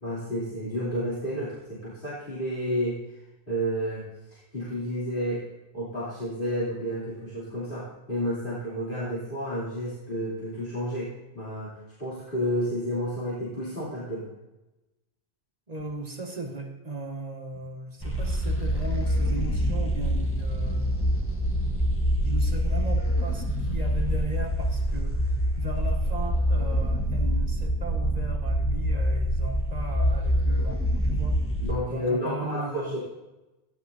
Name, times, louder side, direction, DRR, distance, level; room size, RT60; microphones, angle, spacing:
voice 1, 0.0-3.0 3.5-4.0 4.3-5.4 5.7-14.3 31.6-33.0, equal, 55° left, -10 dB, 3.4 m, -31 dB
voice 2, 15.7-21.1 21.6-21.8 22.2-31.4 31.9-33.0, right 2 dB, 40° right, -1 dB, 1.8 m, -37 dB
sound 1, 18.0-31.7, equal, 15° left, 1.3 m, -25 dB
17.0 x 11.0 x 2.8 m, 1.0 s
omnidirectional pair, 1.1 m